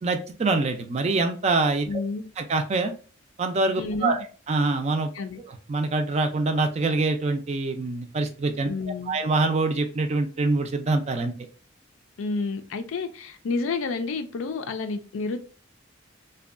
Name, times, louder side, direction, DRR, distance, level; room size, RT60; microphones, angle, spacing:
voice 1, 0.0-1.9 2.4-2.9 3.4-5.1 5.7-8.7 9.1-11.3, right 3 dB, 35° right, 0.3 m, -25 dB
voice 2, 1.9-2.3 3.8-4.2 5.1-5.4 8.7-9.2 12.2-15.4, left 3 dB, 90° left, 0.4 m, -30 dB
2.7 x 2.2 x 2.4 m
head